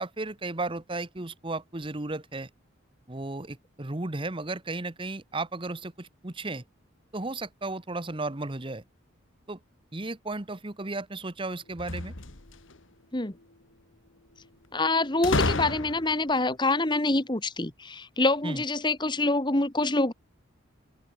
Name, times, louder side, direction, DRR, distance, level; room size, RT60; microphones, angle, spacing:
voice 1, 0.0-2.5 3.1-6.6 7.1-8.8 9.5-9.6 9.9-12.1 18.4-18.6, right 2 dB, 25° right, 1.1 m, -34 dB
sound 1, 11.7-12.8 15.2-16.3, left 2 dB, 75° left, 2.1 m, -29 dB
voice 2, 14.7-20.1, left 2 dB, 25° left, 1.8 m, -26 dB
open air
head